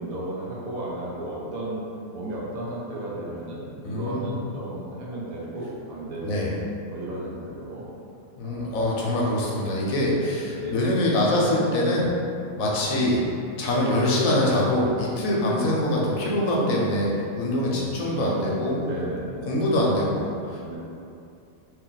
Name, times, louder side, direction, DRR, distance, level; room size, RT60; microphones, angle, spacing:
voice 1, 0.0-1.9 2.1-6.4 6.9-7.8 8.4-8.8 10.6-10.8 17.7-18.5 18.7-19.5 20.6-20.8, right 1 dB, 65° right, -6 dB, 1.1 m, -34 dB
voice 2, 3.8-4.3 6.2-6.6 8.4-12.1 12.6-13.2 13.6-17.1 17.3-18.8 19.4-20.8, left 1 dB, 65° left, -4 dB, 1.0 m, -24 dB
2.9 x 2.8 x 3.9 m, 2.6 s
omnidirectional pair, 1.7 m